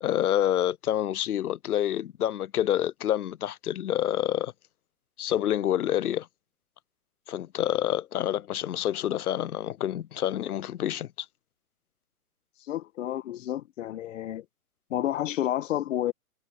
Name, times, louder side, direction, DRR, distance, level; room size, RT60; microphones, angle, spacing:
voice 1, 0.0-4.5 5.2-6.3 7.3-11.3, left 11 dB, 80° left, 0.7 m, -27 dB
voice 2, 12.7-14.4 14.9-16.1, left 12 dB, 55° left, 1.7 m, -30 dB
hypercardioid pair, 130°, 44 cm